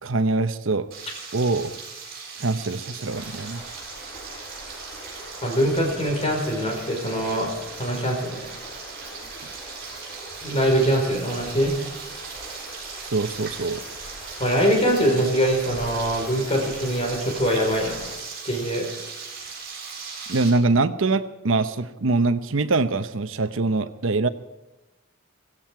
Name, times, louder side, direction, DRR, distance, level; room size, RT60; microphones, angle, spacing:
voice 1, 0.0-0.9 1.3-1.7 2.4-3.6 13.0-13.8 20.3-24.3, right 3 dB, 80° right, 12 dB, 0.9 m, -23 dB
Frying (food), 0.9-20.5, right 5 dB, 50° right, 7.3 m, -39 dB
sound 1, 3.0-18.2, equal, 10° left, 5.9 m, -42 dB
voice 2, 5.4-7.5 7.8-8.5 10.4-11.8 14.4-18.0 18.4-18.9, equal, 30° left, 1 dB, 4.7 m, -23 dB
16.5 x 16.0 x 4.7 m, 1.1 s
head